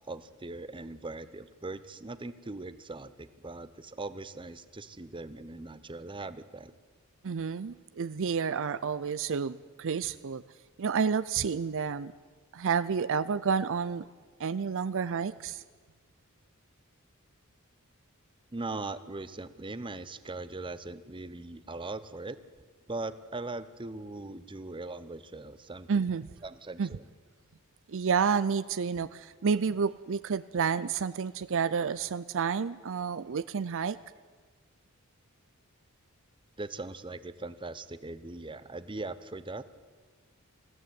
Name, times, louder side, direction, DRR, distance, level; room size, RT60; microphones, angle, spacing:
voice 1, 0.1-6.7 18.5-22.4 22.9-26.1 26.4-27.0 36.6-39.6, right 2 dB, 20° right, 14 dB, 0.8 m, -40 dB
voice 2, 7.2-10.4 10.8-12.1 12.5-14.1 14.4-15.6 25.9-26.3 26.8-26.9 27.9-34.0, right 6 dB, 60° right, 15 dB, 0.5 m, -30 dB
21.0 x 15.5 x 9.5 m, 1.5 s
head